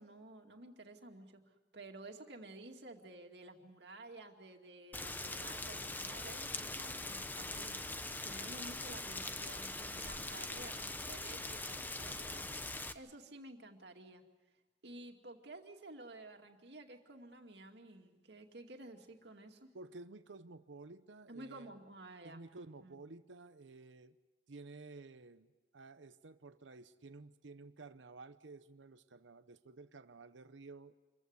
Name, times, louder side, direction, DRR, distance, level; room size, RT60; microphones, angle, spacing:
voice 1, 0.0-1.4 1.7-14.2 14.8-19.7 21.3-22.4 22.8-23.0, right 2 dB, 65° right, 3 dB, 2.3 m, -53 dB
Rain, 4.9-12.9, left 2 dB, 10° left, 0.8 m, -42 dB
voice 2, 8.3-8.9 19.7-21.8 22.2-24.1 24.5-25.5 25.7-31.0, right 3 dB, 90° right, 12 dB, 0.8 m, -53 dB
27.0 x 15.5 x 9.4 m, 1.2 s
head